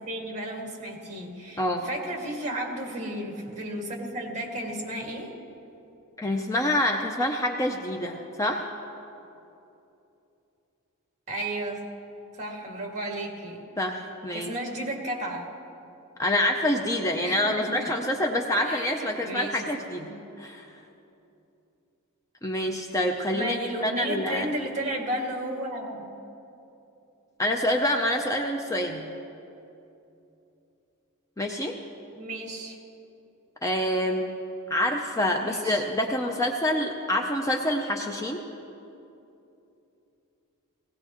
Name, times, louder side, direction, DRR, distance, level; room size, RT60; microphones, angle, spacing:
voice 1, 0.0-5.4 11.3-11.8 12.3-13.6 14.3-15.5 17.2-17.9 18.7-19.7 20.1-20.2 23.3-26.1 32.1-32.8 35.3-35.9, right 1 dB, 35° right, -1 dB, 2.0 m, -33 dB
voice 2, 1.6-1.9 6.2-8.7 13.8-14.5 16.2-20.1 20.4-20.6 22.4-23.6 23.8-24.5 27.4-29.0 31.4-31.8 33.6-34.3 34.7-38.4, left 1 dB, 15° left, 2 dB, 0.6 m, -26 dB
19.0 x 17.0 x 3.0 m, 2.8 s
head